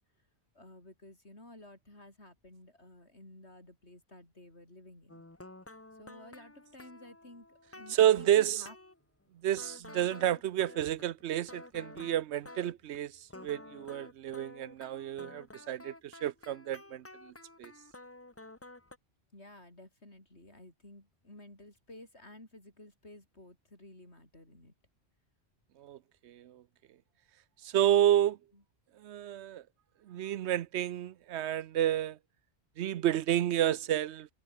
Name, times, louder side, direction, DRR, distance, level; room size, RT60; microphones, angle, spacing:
voice 1, 0.5-5.2 6.0-8.8 19.3-24.7 28.5-28.6, left 1 dB, 80° left, 7.3 m, -53 dB
sound 1, 5.1-9.0 9.6-13.0 13.3-19.0, left 2 dB, 15° left, 1.0 m, -51 dB
voice 2, 7.9-8.6 9.4-13.1 13.4-17.3 17.6-17.7 25.8-26.0 26.2-26.6 27.6-28.4 29.0-29.6 30.1-32.2 32.8-34.3, right 11 dB, 90° right, 0.9 m, -30 dB
omnidirectional pair, 1.1 m